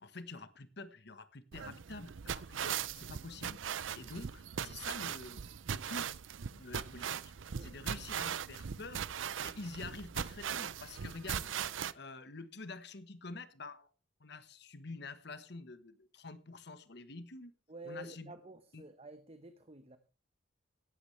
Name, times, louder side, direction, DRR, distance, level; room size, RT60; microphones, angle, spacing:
voice 1, 0.0-3.6 3.9-6.1 6.5-7.3 7.6-9.1 9.4-11.5 11.9-13.9 14.2-17.5 17.8-18.3 18.7-18.8, left 3 dB, 60° left, 13 dB, 1.2 m, -47 dB
sound 1, 1.5-11.9, right 8 dB, 90° right, 0.6 m, -39 dB
voice 2, 7.5-7.8 17.7-20.0, right 2 dB, 30° right, 9 dB, 1.0 m, -50 dB
17.0 x 12.0 x 3.3 m, 0.32 s
head